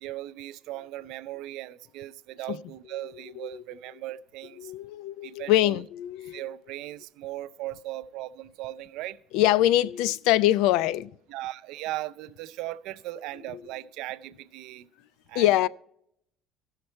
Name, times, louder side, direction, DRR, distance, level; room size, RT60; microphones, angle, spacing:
voice 1, 0.0-4.7 5.2-5.8 6.3-9.2 11.3-14.9 15.3-15.5, right 15 dB, 70° right, 0.5 m, -38 dB
voice 2, 4.6-6.4 9.3-11.1 15.3-15.7, left 14 dB, 80° left, 0.3 m, -23 dB
15.0 x 6.5 x 4.4 m
cardioid pair, 160°, 0 cm